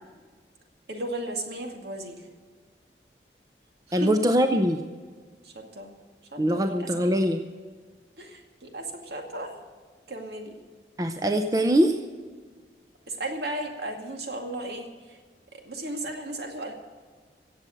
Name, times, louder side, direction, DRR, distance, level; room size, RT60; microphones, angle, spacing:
voice 1, 0.9-2.2 3.9-4.1 5.4-5.9 6.3-6.6 7.0-7.1 8.2-9.6 10.1-10.6 13.1-15.2 15.5-16.7, right 1 dB, 70° right, 3 dB, 2.2 m, -35 dB
voice 2, 3.9-4.8 6.4-7.4 11.0-12.0, equal, 20° right, 6 dB, 0.6 m, -22 dB
16.0 x 7.8 x 7.6 m, 1.5 s
head